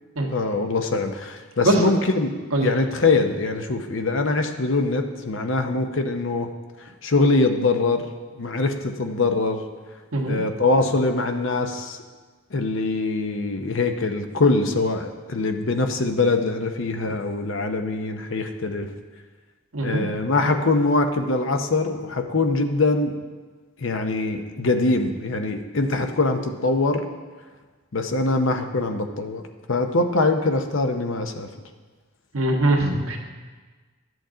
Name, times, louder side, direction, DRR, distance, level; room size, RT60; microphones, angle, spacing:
voice 1, 0.3-2.3 2.6-6.5 7.0-8.1 8.4-9.6 10.2-12.0 12.5-18.9 19.8-23.2 23.8-27.1 27.9-29.4 29.7-31.5, left 3 dB, 60° left, 6 dB, 0.7 m, -23 dB
voice 2, 19.7-20.0 32.3-33.2, right 1 dB, 75° right, 0 dB, 1.4 m, -21 dB
11.5 x 8.0 x 3.8 m, 1.4 s
head